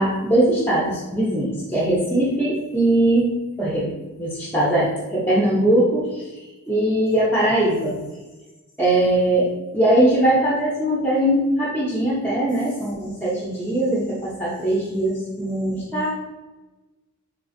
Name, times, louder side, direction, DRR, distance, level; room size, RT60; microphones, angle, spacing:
voice 1, 0.0-6.2 6.7-8.0 8.8-9.5 9.7-16.1, right 1 dB, 10° left, -6 dB, 0.5 m, -21 dB
3.4 x 2.4 x 2.5 m, 1.1 s
head